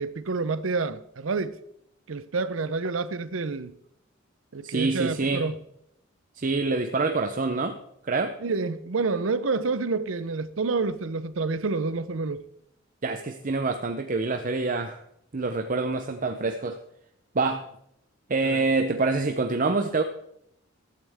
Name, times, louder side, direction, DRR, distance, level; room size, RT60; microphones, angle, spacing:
voice 1, 0.0-1.6 2.1-3.8 4.5-5.5 8.4-12.4 18.5-18.6, right 4 dB, 80° right, 0.7 m, -28 dB
voice 2, 4.6-5.5 6.3-8.4 13.0-15.0 15.3-16.8 17.3-17.7 18.3-20.0, right 3 dB, 40° right, 0.7 m, -26 dB
14.5 x 12.5 x 3.5 m
head